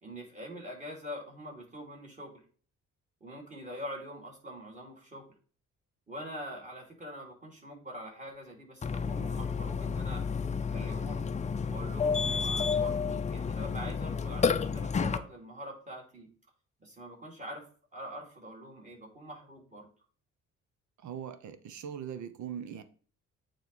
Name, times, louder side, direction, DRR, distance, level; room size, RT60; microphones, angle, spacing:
voice 1, 0.0-2.4 3.2-5.3 6.1-10.2 10.7-11.3 11.7-16.3 16.8-17.7 17.9-19.9, equal, 25° right, 3.0 m, -44 dB
Burping eructation, 8.8-15.2, left 5 dB, 25° left, 0.5 m, -31 dB
voice 2, 21.0-22.8, right 8 dB, 70° right, 0.8 m, -40 dB
9.0 x 3.2 x 4.2 m
cardioid pair, 90°, 30 cm